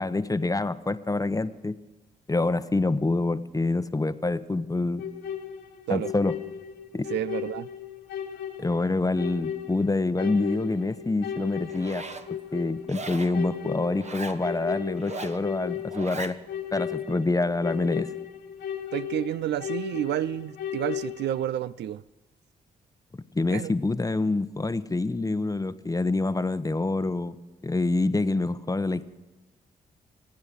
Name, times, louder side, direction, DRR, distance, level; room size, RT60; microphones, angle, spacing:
voice 1, 0.0-1.8 2.3-5.0 5.9-6.4 6.9-7.1 8.6-12.0 12.3-16.4 16.7-18.1 23.3-27.4 27.6-29.1, left 2 dB, 20° left, 0.9 m, -26 dB
sound 1, 5.0-21.4, left 9 dB, 75° left, 1.6 m, -36 dB
voice 2, 7.1-7.7 18.9-22.0 23.5-23.7, right 12 dB, 60° right, 0.4 m, -30 dB
Zipper (clothing), 11.7-12.3 12.9-13.4 14.0-14.4 15.0-15.4 15.9-16.4, right 3 dB, 35° right, 1.2 m, -38 dB
27.0 x 9.6 x 5.2 m
hypercardioid pair, 40°, 20 cm